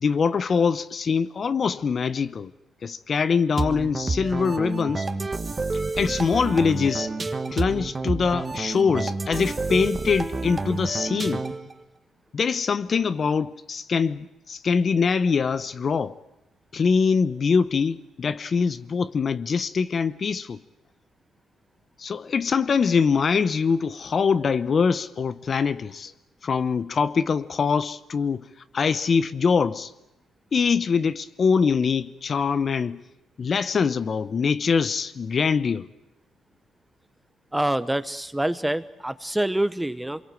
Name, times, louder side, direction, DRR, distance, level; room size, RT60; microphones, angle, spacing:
voice 1, 0.0-2.5 2.8-5.1 6.0-7.1 7.5-11.4 12.3-16.2 16.7-20.6 22.0-26.1 26.4-28.4 28.7-29.9 30.5-33.0 33.4-35.9, left 5 dB, 45° left, 0.8 m, -23 dB
sound 1, 3.6-11.7, right 3 dB, 25° right, 1.6 m, -29 dB
voice 2, 37.5-40.2, right 1 dB, 10° right, 0.9 m, -26 dB
24.5 x 23.0 x 7.7 m
cardioid pair, 90°, 0 cm